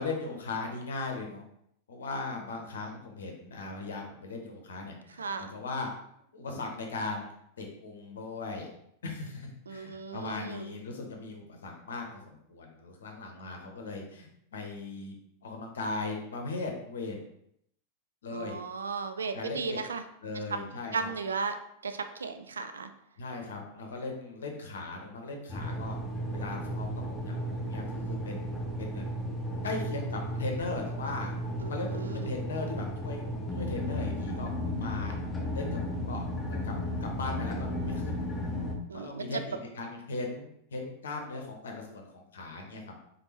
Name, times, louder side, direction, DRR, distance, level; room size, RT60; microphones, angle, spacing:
voice 1, 0.0-1.4 1.9-5.9 6.3-7.3 7.6-8.7 9.0-15.1 15.4-17.2 18.2-18.6 19.3-19.8 20.2-21.1 23.2-26.0 26.3-29.2 29.6-31.4 31.7-33.2 33.5-35.1 35.5-36.7 37.0-38.2 38.9-42.8, left 3 dB, 65° left, 2 dB, 0.8 m, -38 dB
voice 2, 5.2-5.6 9.7-10.7 18.3-20.0 20.5-20.6 20.9-21.5 21.8-22.9 31.6-32.4 38.9-39.4, right 4 dB, 70° right, 8 dB, 0.3 m, -35 dB
sound 1, 25.5-38.8, equal, 10° left, 0.7 m, -34 dB
3.9 x 3.5 x 2.9 m, 0.74 s
figure-of-eight pair, 90°, 0 cm